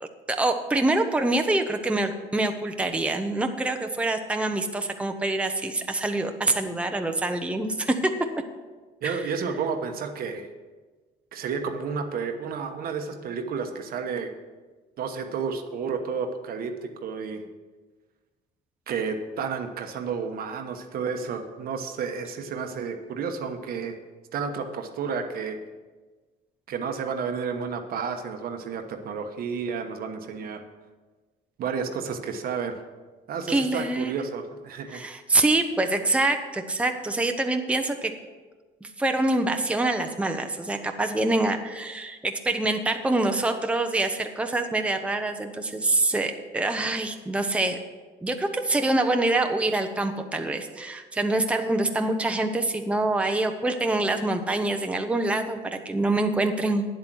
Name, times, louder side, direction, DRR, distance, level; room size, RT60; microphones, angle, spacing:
voice 1, 0.0-8.1 9.0-9.3 33.5-34.1 34.9-38.1 38.8-47.8 48.2-56.9, right 2 dB, 5° right, 5 dB, 0.8 m, -25 dB
voice 2, 9.0-10.5 11.3-14.3 15.0-17.4 18.9-24.0 24.3-25.6 26.7-30.6 31.6-32.8 33.3-35.0, right 5 dB, 60° right, 6 dB, 1.1 m, -31 dB
9.6 x 7.9 x 6.1 m, 1.3 s
cardioid pair, 110°, 17 cm